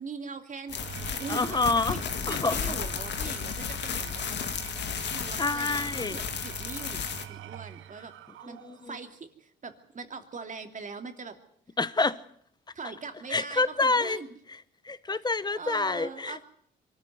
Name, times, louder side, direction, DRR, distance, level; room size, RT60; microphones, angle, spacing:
voice 1, 0.0-4.6 5.1-8.1 8.4-11.4 12.7-14.3 15.5-16.4, right 5 dB, 40° right, 2.8 m, -42 dB
sound 1, 0.7-7.2, left 7 dB, 60° left, 2.0 m, -33 dB
Engine / Tools, 0.7-9.0, right 12 dB, 80° right, 0.9 m, -44 dB
voice 2, 1.3-2.0 2.3-2.8 5.3-6.2 8.4-9.0 11.8-12.2 13.3-14.2 14.5-14.6 14.8-16.4, left 3 dB, 20° left, 1.1 m, -28 dB
23.5 x 13.5 x 9.5 m
cardioid pair, 90°, 20 cm